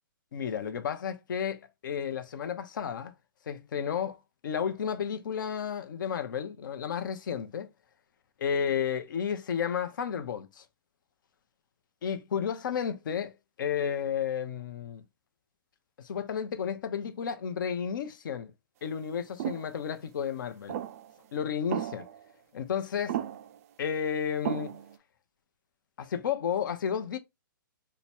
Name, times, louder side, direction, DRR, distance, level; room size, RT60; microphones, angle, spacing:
voice 1, 0.3-3.1 3.5-4.2 4.4-7.7 8.4-10.6 12.0-13.3 13.6-15.0 16.0-18.5 18.8-20.8 21.3-22.1 22.5-23.2 23.8-24.8 26.0-27.2, left 7 dB, 65° left, 0.7 m, -32 dB
sound 1, 19.4-19.7 20.7-21.1 21.7-22.2 23.1-23.6 24.5-25.0, right 11 dB, 45° right, 0.3 m, -34 dB
3.0 x 2.2 x 4.2 m
hypercardioid pair, 140°, 11 cm